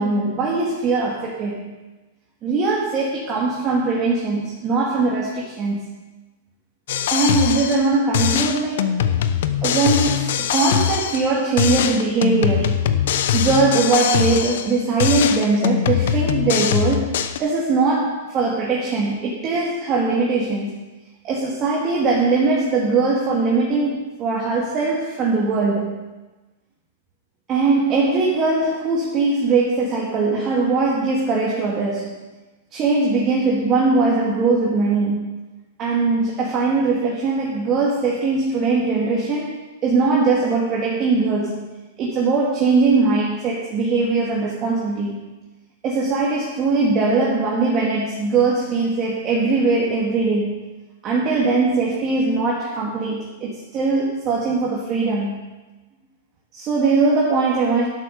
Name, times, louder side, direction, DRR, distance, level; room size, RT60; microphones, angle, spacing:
voice 1, 0.0-1.8 2.4-5.8 7.1-9.0 9.6-12.8 13.3-17.1 17.4-20.8 21.2-26.0 27.5-32.1 32.7-35.3 35.8-41.7 42.0-45.2 45.8-50.6 51.0-55.4 56.5-57.9, right 3 dB, 25° right, -4 dB, 2.2 m, -20 dB
sound 1, 6.9-11.3 11.6-14.7 15.0-17.4, left 9 dB, 70° left, 0.8 m, -22 dB
11.0 x 8.1 x 6.6 m, 1.1 s
supercardioid pair, 155°, 0 cm